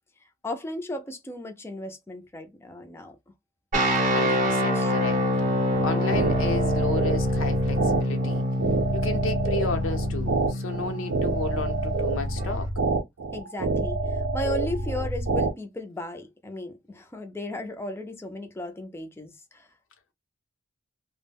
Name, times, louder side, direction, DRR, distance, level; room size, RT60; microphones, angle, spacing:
voice 1, 0.4-3.2 4.7-4.9 13.3-19.7, left 1 dB, 10° left, 0.4 m, -35 dB
sound 1, 3.7-12.6, equal, 40° right, 0.7 m, -26 dB
voice 2, 4.1-5.2 5.8-8.4 8.9-12.7, left 3 dB, 80° left, 0.7 m, -33 dB
sound 2, 5.7-15.5, right 3 dB, 75° right, 0.5 m, -27 dB
2.2 x 2.0 x 3.3 m
head